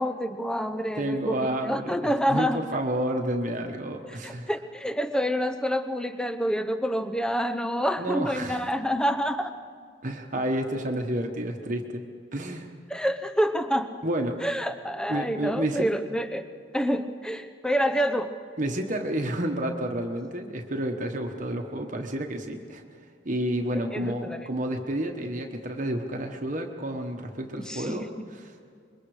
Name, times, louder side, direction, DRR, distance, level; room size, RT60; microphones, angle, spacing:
voice 1, 0.0-2.6 4.2-9.5 12.9-13.9 14.4-16.5 16.7-18.3 23.9-24.5 27.7-28.0, equal, 5° left, 9 dB, 0.8 m, -27 dB
voice 2, 0.9-4.5 8.0-8.7 10.0-12.0 12.3-12.7 14.0-14.4 15.1-15.9 18.6-22.8 23.2-28.5, right 1 dB, 40° right, 3 dB, 1.3 m, -30 dB
26.0 x 22.5 x 4.9 m, 2.2 s
head